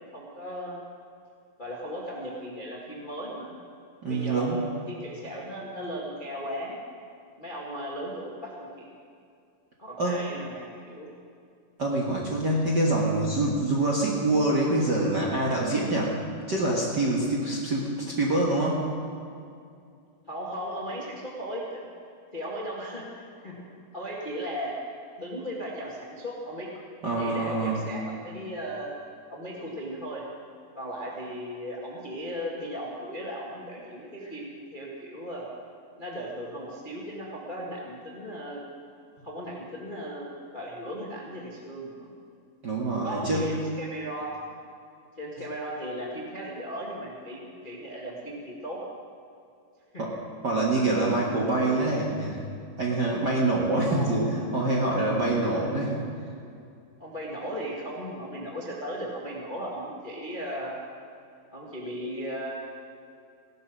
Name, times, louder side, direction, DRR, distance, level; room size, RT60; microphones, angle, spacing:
voice 1, 0.1-0.8 1.6-3.6 4.1-6.8 7.4-8.9 9.8-11.1 20.3-21.8 22.3-23.6 23.9-24.7 25.2-26.7 27.2-28.9 29.3-30.2 30.7-35.5 36.0-38.6 39.2-42.1 43.0-44.4 45.2-48.8 49.9-50.0 53.8-54.5 55.6-55.9 57.0-60.8 61.5-62.5, equal, 25° left, -3 dB, 1.1 m, -36 dB
voice 2, 4.0-4.6 10.0-10.3 11.8-16.2 16.5-18.9 27.0-27.8 42.6-43.5 50.0-50.2 50.4-52.4 52.8-56.0, right 2 dB, 50° right, -3 dB, 1.4 m, -25 dB
17.0 x 11.0 x 6.4 m, 2.4 s
omnidirectional pair, 3.8 m